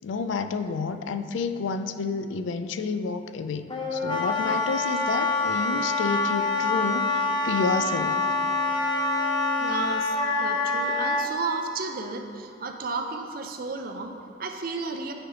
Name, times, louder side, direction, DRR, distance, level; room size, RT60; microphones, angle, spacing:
voice 1, 0.0-8.3, left 5 dB, 80° left, 10 dB, 0.3 m, -30 dB
Wind instrument woodwind instrument, 3.7-11.3, left 2 dB, 25° left, 0.6 m, -26 dB
voice 2, 9.6-15.1, right 4 dB, 50° right, 5 dB, 0.5 m, -33 dB
9.6 x 3.2 x 5.0 m, 2.4 s
head